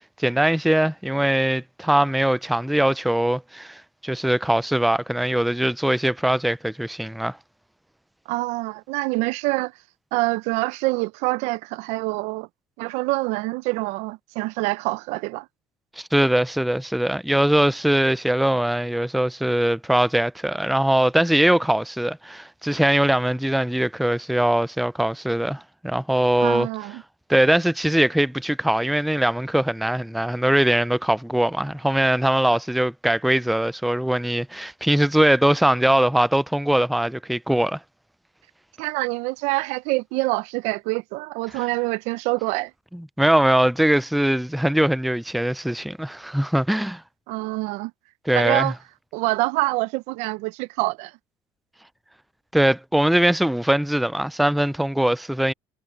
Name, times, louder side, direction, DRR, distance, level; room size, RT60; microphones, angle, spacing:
voice 1, 0.2-7.4 16.0-26.7 27.3-37.8 42.9-47.0 48.3-48.7 52.5-55.5, right 1 dB, ahead, 0.4 m, -21 dB
voice 2, 8.3-9.7 10.1-12.5 12.8-15.5 26.4-27.0 38.8-42.7 47.3-47.9 48.3-48.7 49.1-51.1, right 23 dB, 75° right, 0.6 m, -25 dB
supercardioid pair, 100°, 12 cm